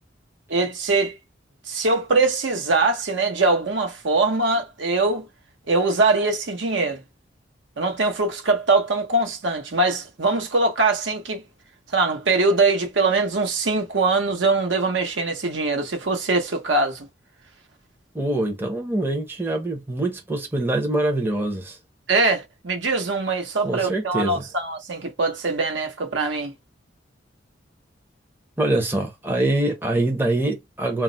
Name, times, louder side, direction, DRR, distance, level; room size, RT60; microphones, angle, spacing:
voice 1, 0.5-1.2 1.7-5.3 5.7-7.0 7.8-11.4 11.9-17.1 22.1-26.5, right 3 dB, 75° right, 0.9 m, -22 dB
voice 2, 18.1-21.8 23.6-24.5 28.6-31.0, right 2 dB, 10° right, 0.6 m, -24 dB
2.3 x 2.0 x 3.7 m
head